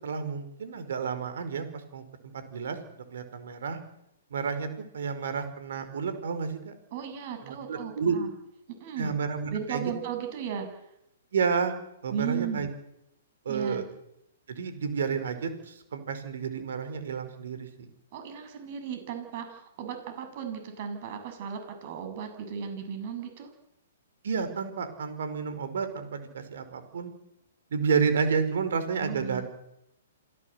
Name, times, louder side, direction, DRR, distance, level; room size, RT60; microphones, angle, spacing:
voice 1, 0.0-1.6 1.9-2.0 2.3-2.8 3.1-3.8 4.3-4.7 4.9-6.7 7.4-8.2 9.0-9.8 11.3-11.7 12.0-12.7 13.4-13.9 14.5-17.9 24.2-27.1 27.7-29.5, right 6 dB, 65° right, 10 dB, 5.1 m, -30 dB
voice 2, 6.9-8.3 8.8-9.1 9.5-10.7 12.1-12.7 13.5-13.8 18.1-23.5 29.0-29.4, right 7 dB, 45° right, 6 dB, 7.6 m, -35 dB
27.5 x 17.0 x 8.2 m, 0.81 s
hypercardioid pair, 120°, 0 cm